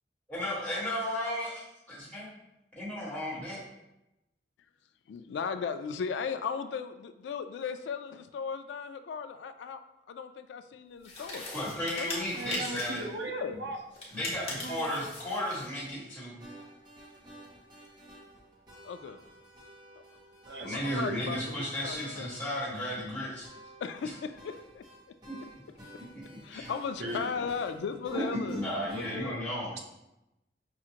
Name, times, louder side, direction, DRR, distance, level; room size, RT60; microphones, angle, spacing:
voice 1, 0.3-1.5 1.9-2.3 2.7-3.6 11.5-13.0 14.1-16.3 20.6-23.5 24.0-24.1 25.3-25.4 26.1-26.7 27.0-27.2 28.1-29.7, equal, 10° left, -9 dB, 1.5 m, -34 dB
voice 2, 5.1-9.8 10.1-11.5 11.9-12.1 13.2-13.6 18.8-19.2 20.6-22.3 23.8-25.2 26.4-29.4, left 6 dB, 90° left, 10 dB, 0.3 m, -37 dB
sound 1, 11.0-13.1 13.9-15.7, left 2 dB, 35° left, 1.0 m, -40 dB
voice 3, 12.3-13.8 14.4-15.1 20.5-21.4 26.6-26.7 27.0-27.4 29.7-29.8, right 2 dB, 75° right, 2 dB, 0.6 m, -38 dB
sound 2, 16.4-29.2, right 1 dB, 25° right, 1.0 m, -52 dB
5.8 x 2.5 x 2.8 m, 0.92 s
head